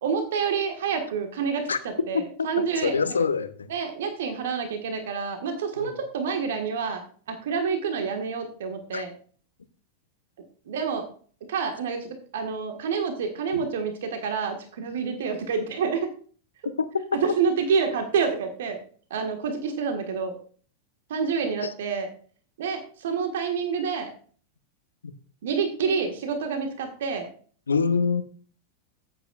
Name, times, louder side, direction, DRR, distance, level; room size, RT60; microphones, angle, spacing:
voice 1, 0.0-3.2 3.7-7.0 7.3-9.1 10.7-11.0 11.5-16.1 17.1-18.8 19.1-20.3 21.1-22.1 22.6-24.1 25.4-27.3, right 6 dB, 60° right, 1.6 m, -28 dB
voice 2, 2.1-3.7 5.8-6.0 8.9-9.0 13.5-13.6 16.6-17.2 21.6-21.7 25.0-25.1 27.7-28.2, left 5 dB, 75° left, 0.9 m, -26 dB
14.0 x 8.8 x 2.4 m
figure-of-eight pair, 90°, 0 cm